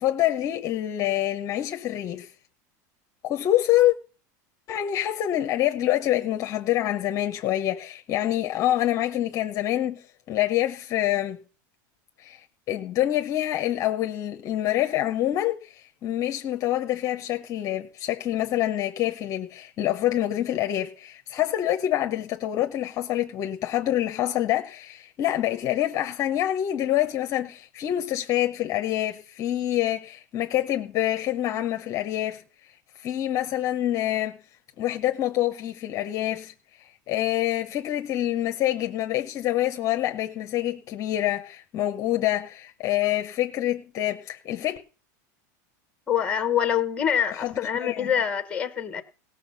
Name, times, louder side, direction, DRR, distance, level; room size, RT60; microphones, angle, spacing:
voice 1, 0.0-2.3 3.2-3.9 4.7-11.4 12.2-32.4 33.0-34.4 34.8-36.5 36.8-44.8 47.4-47.5 47.8-48.1, left 13 dB, 35° left, 0.8 m, -26 dB
voice 2, 46.1-49.0, left 9 dB, 10° left, 1.2 m, -25 dB
17.0 x 6.5 x 5.5 m
supercardioid pair, 150°, 10 cm